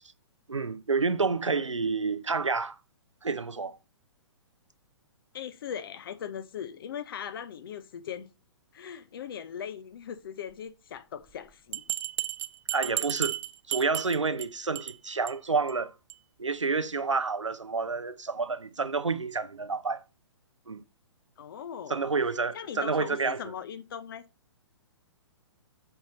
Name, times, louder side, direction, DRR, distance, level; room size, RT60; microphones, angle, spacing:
voice 1, 0.5-2.8 3.2-3.8 12.7-13.4 13.7-15.9 16.4-20.0 20.7-20.8 21.9-23.4, right 4 dB, 85° right, 0.7 m, -29 dB
voice 2, 5.3-8.3 8.7-11.8 21.4-22.1 22.5-24.2, left 8 dB, 50° left, 0.8 m, -39 dB
Bell, 11.7-14.5 14.8-15.0 15.3-15.4 15.7-15.8 16.1-16.2, right 14 dB, 20° right, 0.5 m, -33 dB
7.9 x 5.6 x 4.2 m
figure-of-eight pair, 120°, 15 cm